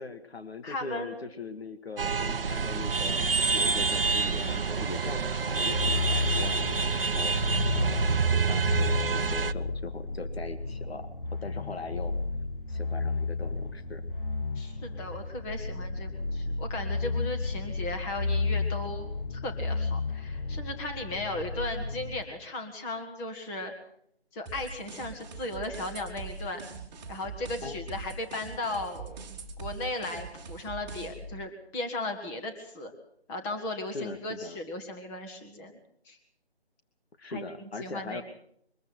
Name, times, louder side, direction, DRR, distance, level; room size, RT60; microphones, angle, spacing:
voice 1, 0.0-3.2 3.5-12.1 12.7-14.0 27.6-27.7 33.9-34.6 37.2-38.2, left 3 dB, 70° left, 10 dB, 2.0 m, -40 dB
voice 2, 0.6-1.3 14.5-23.7 24.3-26.6 27.1-29.2 29.6-32.9 33.3-35.7 36.0-36.2 37.3-37.4 37.8-38.2, left 2 dB, 10° left, 4 dB, 1.5 m, -36 dB
sound 1, 2.0-9.5, right 4 dB, 60° right, 0.9 m, -27 dB
sound 2, 5.7-22.2, left 3 dB, 55° left, 1.8 m, -32 dB
sound 3, 24.5-31.3, right 4 dB, 10° right, 2.1 m, -42 dB
23.0 x 14.5 x 8.0 m, 0.68 s
figure-of-eight pair, 160°, 32 cm